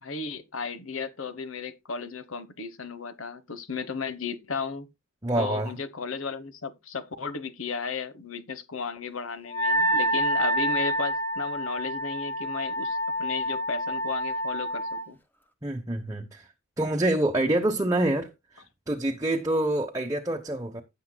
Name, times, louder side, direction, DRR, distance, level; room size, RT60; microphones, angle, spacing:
voice 1, 0.0-4.9 5.4-15.2, left 5 dB, 75° left, 1.2 m, -34 dB
voice 2, 5.2-5.7 15.6-16.5 16.8-20.8, right 1 dB, 15° right, 0.9 m, -27 dB
Wind instrument woodwind instrument, 9.5-15.1, equal, 10° left, 1.0 m, -28 dB
16.0 x 7.1 x 2.3 m
head